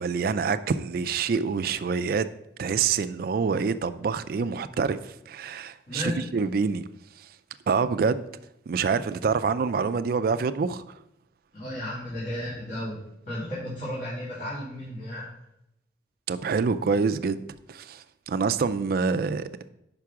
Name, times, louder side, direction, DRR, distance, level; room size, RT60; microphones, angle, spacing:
voice 1, 0.0-2.3 2.6-6.8 7.2-7.3 7.7-8.2 8.7-11.0 16.3-17.4 17.7-19.5, right 5 dB, 50° right, 0.3 m, -26 dB
voice 2, 5.9-6.3 11.5-13.0 13.2-15.3, left 1 dB, 45° left, 2.5 m, -33 dB
5.3 x 4.8 x 5.8 m
head